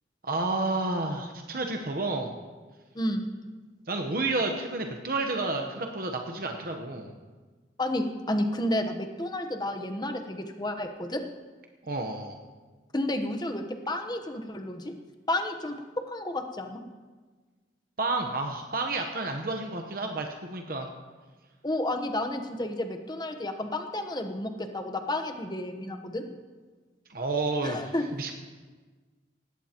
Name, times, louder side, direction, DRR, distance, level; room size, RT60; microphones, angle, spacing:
voice 1, 0.2-2.3 3.9-7.1 11.8-12.4 18.0-20.9 27.1-27.9 28.2-28.3, right 2 dB, 55° right, 3 dB, 1.0 m, -30 dB
voice 2, 2.9-3.3 7.8-11.2 12.9-14.9 15.3-15.7 16.1-16.8 21.6-26.2 27.6-28.0, left 1 dB, 25° left, 5 dB, 1.0 m, -31 dB
19.0 x 16.0 x 3.0 m, 1.4 s
head